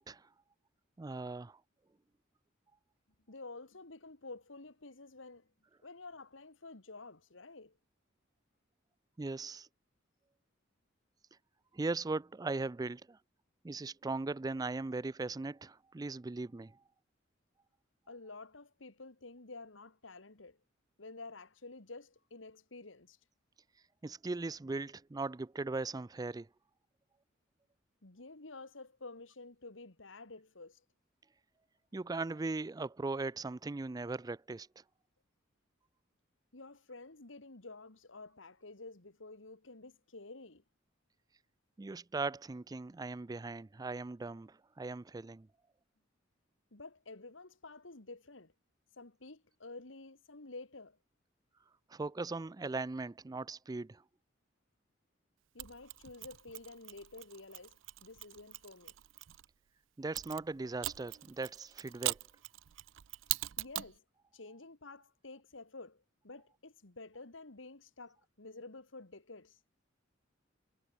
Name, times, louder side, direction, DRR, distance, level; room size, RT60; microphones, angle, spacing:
voice 1, 1.0-1.6 9.2-9.7 11.7-13.2 13.6-16.7 24.0-26.5 31.9-34.7 41.8-45.5 51.9-54.0 60.0-62.2, right 3 dB, 20° right, 0.4 m, -39 dB
voice 2, 3.3-5.5 5.8-7.8 18.1-20.6 21.0-23.2 28.0-30.8 36.5-40.6 46.7-48.5 49.0-51.0 55.5-58.9 63.6-64.0 64.3-69.6, left 3 dB, 85° left, 2.1 m, -50 dB
Mechanisms, 55.6-59.4 60.1-64.0, right 17 dB, 80° right, 0.5 m, -41 dB
head